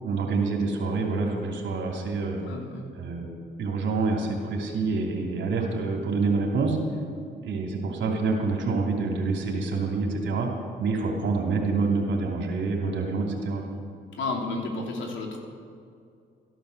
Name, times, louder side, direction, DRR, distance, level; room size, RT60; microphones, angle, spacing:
voice 1, 0.0-2.4 2.9-3.3 3.6-6.8 7.4-10.5 10.8-13.6, right 4 dB, 65° right, 1 dB, 2.9 m, -27 dB
voice 2, 2.4-2.9 14.1-15.4, left 3 dB, 70° left, 1 dB, 2.8 m, -32 dB
14.0 x 11.0 x 6.6 m, 2.4 s
cardioid pair, 90°, 20 cm